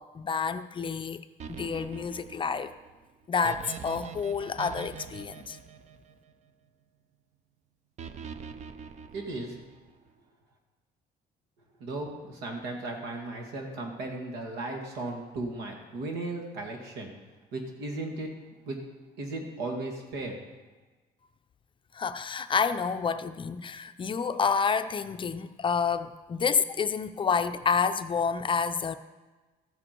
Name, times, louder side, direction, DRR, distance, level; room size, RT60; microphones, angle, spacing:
voice 1, 0.0-2.7 3.3-5.6 21.9-29.0, left 6 dB, 30° left, 0.5 m, -29 dB
sound 1, 1.4-6.7 8.0-9.9, right 7 dB, 45° right, 0.6 m, -44 dB
voice 2, 9.1-9.6 11.8-17.1 17.5-18.3 18.6-18.8 19.2-20.4, right 2 dB, 85° right, 2.1 m, -36 dB
13.5 x 7.8 x 4.5 m
cardioid pair, 110°, 17 cm